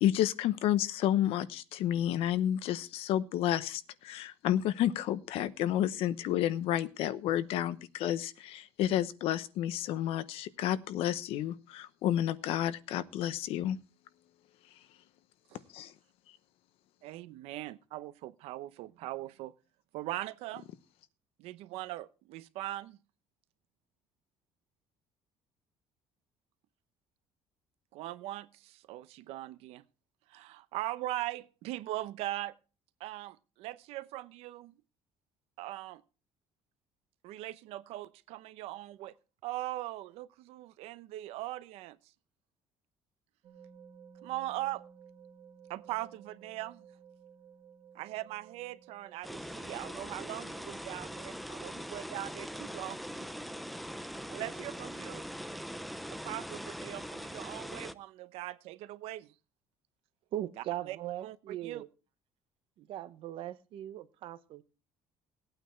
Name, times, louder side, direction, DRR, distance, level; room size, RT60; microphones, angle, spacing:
voice 1, 0.0-13.8 15.7-15.9, left 12 dB, 70° left, 0.9 m, -30 dB
voice 2, 17.0-19.5 19.9-20.6 21.4-23.0 27.9-29.8 30.3-32.5 33.0-34.7 35.6-36.0 37.2-39.2 39.4-42.0 44.2-44.8 45.7-46.9 47.9-53.0 54.3-55.2 56.1-59.3 60.9-61.0 61.2-61.8, right 16 dB, 80° right, 0.8 m, -40 dB
sound 1, 43.4-55.6, right 7 dB, 40° right, 3.4 m, -57 dB
sound 2, 49.2-57.9, equal, ahead, 0.5 m, -42 dB
voice 3, 60.3-61.9 62.8-64.6, right 13 dB, 60° right, 1.0 m, -39 dB
18.0 x 9.0 x 4.4 m
cardioid pair, 150°, 10 cm